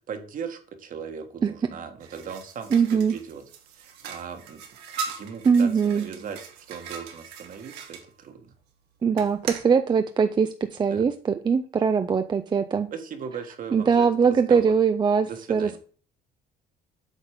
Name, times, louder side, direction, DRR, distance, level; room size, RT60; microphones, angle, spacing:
voice 1, 0.1-3.4 3.7-4.6 5.1-8.5 10.9-11.1 12.9-14.7 15.2-15.8, right 6 dB, 55° right, 6 dB, 1.5 m, -38 dB
sound 1, 2.0-8.0 9.1-9.7, right 5 dB, 90° right, 1.4 m, -39 dB
voice 2, 2.7-3.1 5.4-6.1 9.0-12.9 13.7-15.8, right 6 dB, 25° right, 8 dB, 0.5 m, -22 dB
8.1 x 4.0 x 4.9 m, 0.42 s
cardioid pair, 110°, 17 cm